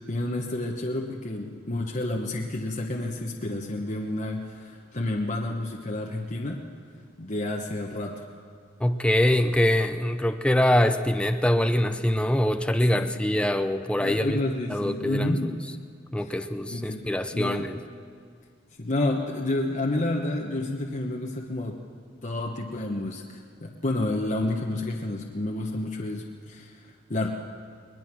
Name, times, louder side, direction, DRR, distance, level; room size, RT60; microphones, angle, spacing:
voice 1, 0.1-6.7 7.2-8.2 13.0-13.2 14.0-15.5 16.2-16.4 16.7-17.0 17.3-17.7 18.8-21.8 22.2-27.3, left 2 dB, 40° left, 0 dB, 1.1 m, -30 dB
voice 2, 8.8-14.4 14.7-15.5 16.1-17.8, left 1 dB, 5° left, 8 dB, 0.5 m, -24 dB
21.5 x 20.5 x 6.1 m, 2.1 s
head